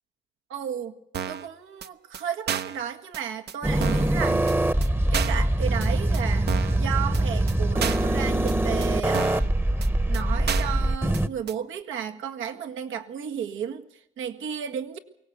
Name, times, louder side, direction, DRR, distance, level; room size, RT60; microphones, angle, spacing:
voice 1, 0.5-1.0 1.3-4.6 5.1-9.3 10.1-13.8 14.2-15.0, right 8 dB, 85° right, 5 dB, 1.9 m, -33 dB
sound 1, 1.1-1.5 1.8-1.9 2.1-2.2 2.5-2.8 3.1-3.2 3.5-3.6 3.8-4.1 4.5-4.6 4.8-4.9 5.1-5.5 5.8-5.9 6.1-6.2 6.5-6.8 7.1-7.2 7.5-7.6 7.8-8.1 8.5-8.6 8.8-8.9 9.1-9.5 9.8-9.9 10.1-10.2 10.5-10.8 11.1-11.2 11.5-11.6, right 8 dB, 55° right, 0.9 m, -31 dB
sound 2, 3.6-11.3, right 1 dB, 10° right, 1.0 m, -23 dB
23.5 x 18.0 x 8.2 m, 0.81 s
cardioid pair, 90°, 20 cm